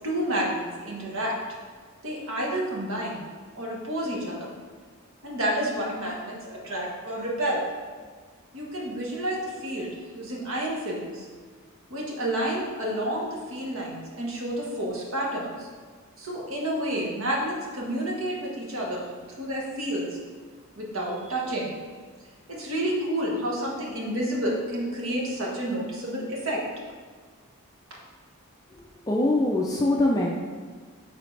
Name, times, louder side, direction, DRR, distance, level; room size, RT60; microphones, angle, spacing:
voice 1, 0.0-1.4 2.0-3.2 3.5-4.5 5.2-7.7 8.5-11.3 11.9-15.7 16.2-19.1 19.4-20.2 20.7-21.7 22.5-26.6, right 1 dB, 65° right, -3 dB, 1.4 m, -30 dB
voice 2, 29.1-30.4, left 1 dB, 15° left, -2 dB, 0.4 m, -23 dB
8.9 x 4.1 x 3.3 m, 1.5 s
head